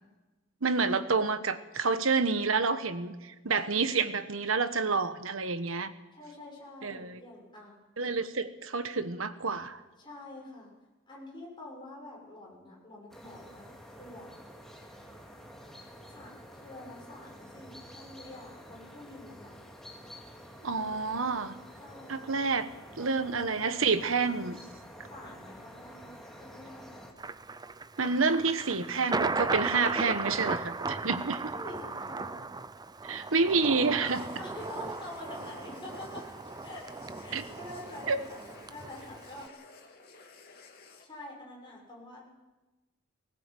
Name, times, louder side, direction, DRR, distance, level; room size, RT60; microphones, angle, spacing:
voice 1, 0.6-5.9 6.8-7.2 8.0-9.8 20.6-21.6 22.1-22.7 23.0-24.6 28.0-31.4 33.0-34.3 37.3-37.4 38.1-38.2, right 4 dB, 85° right, 11 dB, 1.2 m, -28 dB
voice 2, 6.1-7.8 10.0-10.7 11.1-13.7 14.0-14.3 16.0-19.6 21.8-22.3 23.0-23.4 25.1-27.0 31.5-32.5 34.4-36.2 36.6-36.8 37.2-39.5 41.0-42.2, left 1 dB, 25° left, -3 dB, 6.5 m, -46 dB
sound 1, 13.1-27.1, equal, ahead, 2.7 m, -49 dB
Thunder, 27.2-39.5, right 3 dB, 20° right, 0.6 m, -36 dB
sound 2, 34.0-41.0, left 3 dB, 50° left, 2.6 m, -53 dB
19.0 x 18.5 x 7.8 m, 1.2 s
head